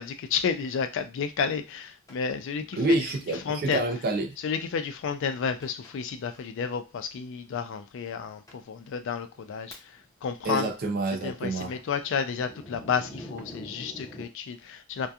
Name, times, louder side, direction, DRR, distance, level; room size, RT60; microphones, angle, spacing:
voice 1, 0.0-3.8 4.4-9.9 10.2-10.7 11.2-15.1, left 6 dB, 55° left, 0.3 m, -31 dB
Thunder, 2.1-2.2 3.3-3.6 3.9-4.0 4.7-4.8 5.6-5.9 6.3-6.5 7.4-7.5 8.1-8.2 8.5-8.6 9.2-10.2 10.4-14.3, equal, 15° left, 0.6 m, -46 dB
voice 2, 2.8-4.4 10.4-11.7, right 2 dB, 45° right, 0.4 m, -27 dB
2.7 x 2.2 x 2.3 m
head